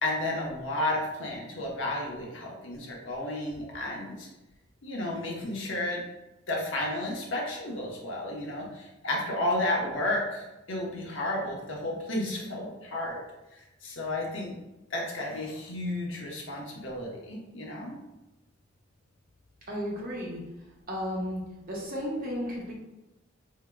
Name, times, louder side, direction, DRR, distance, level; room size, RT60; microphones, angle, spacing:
voice 1, 0.0-4.3 4.8-6.0 6.5-13.2 13.8-14.5 14.9-18.0, left 1 dB, 70° left, -2 dB, 0.9 m, -32 dB
voice 2, 19.7-20.4 20.9-21.4 21.7-22.7, equal, 50° right, -3 dB, 1.0 m, -33 dB
4.8 x 2.8 x 2.2 m, 0.98 s
head